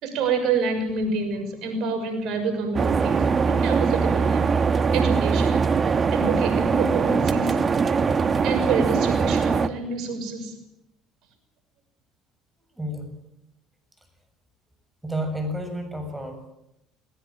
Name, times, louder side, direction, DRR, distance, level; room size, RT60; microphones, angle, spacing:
voice 1, 0.0-4.5 4.9-5.6 6.1-7.6 8.4-10.5, right 4 dB, 65° right, 7 dB, 6.4 m, -27 dB
sound 1, 2.7-9.7, right 5 dB, 35° right, 1.4 m, -22 dB
voice 2, 12.8-13.2 15.0-16.5, equal, 10° right, 7 dB, 7.2 m, -31 dB
20.0 x 19.0 x 9.1 m, 0.84 s
hypercardioid pair, 70°, 0 cm